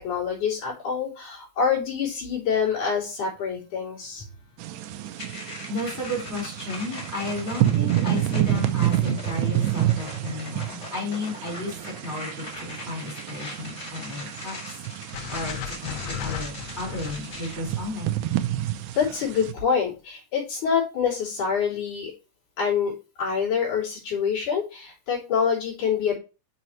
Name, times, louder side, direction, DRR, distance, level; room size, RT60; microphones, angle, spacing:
voice 1, 0.0-4.2 18.9-22.1 22.6-22.9 23.2-26.2, left 6 dB, 90° left, -4 dB, 5.3 m, -26 dB
sound 1, 4.6-19.5, right 13 dB, 90° right, 2.2 m, -29 dB
sound 2, 5.2-17.6, left 2 dB, 30° left, 1.9 m, -40 dB
voice 2, 5.7-14.5 15.0-18.2, left 2 dB, 5° left, -2 dB, 4.6 m, -33 dB
sound 3, 15.1-19.3, left 8 dB, 65° left, 1.8 m, -36 dB
9.0 x 6.4 x 3.2 m, 0.30 s
omnidirectional pair, 3.4 m